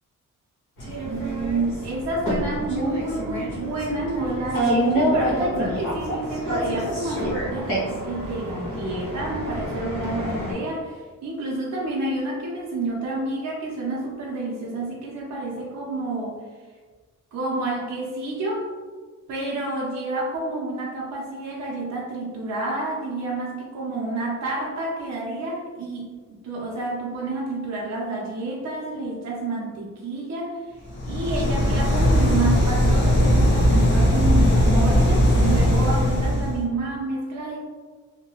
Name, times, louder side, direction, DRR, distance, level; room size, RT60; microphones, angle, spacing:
sound 1, 0.8-10.5, right 1 dB, 85° left, 1.1 m, -27 dB
voice 1, 1.0-16.4 17.3-18.7 19.3-37.6, right 2 dB, 55° right, -4 dB, 0.6 m, -29 dB
sound 2, 30.9-36.6, equal, 35° left, 0.7 m, -19 dB
2.8 x 2.2 x 2.8 m, 1.4 s
wide cardioid pair, 140°, 32 cm